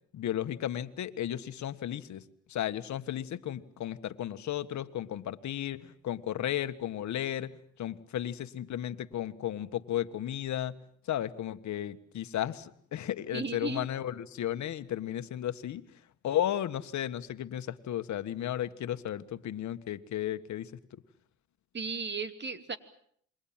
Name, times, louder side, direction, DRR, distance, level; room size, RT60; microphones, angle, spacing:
voice 1, 0.1-10.7 11.0-15.8 16.2-20.7, left 11 dB, 70° left, 10 dB, 1.6 m, -34 dB
voice 2, 13.3-13.9 21.7-22.8, right 4 dB, 35° right, 10 dB, 2.7 m, -35 dB
28.0 x 23.0 x 7.5 m, 0.64 s
cardioid pair, 90°, 30 cm